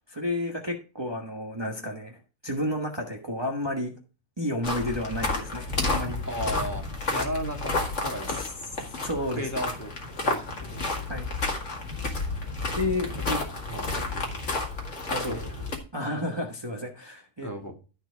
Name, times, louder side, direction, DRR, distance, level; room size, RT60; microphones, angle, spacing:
voice 1, 0.1-3.9 4.4-6.2 9.0-9.5 11.1-11.3 12.7-13.4 14.0-14.1 15.1-15.5 15.9-17.5, left 1 dB, 20° right, 1 dB, 1.2 m, -31 dB
sound 1, 4.6-15.8, left 3 dB, 65° left, 2.2 m, -31 dB
voice 2, 6.2-6.8 7.1-7.7 8.0-8.7 9.3-9.9 10.2-11.1 13.6-14.4 15.3-15.5 17.4-17.7, equal, 15° left, 1 dB, 1.7 m, -35 dB
13.5 x 4.5 x 4.6 m, 0.33 s
omnidirectional pair, 1.3 m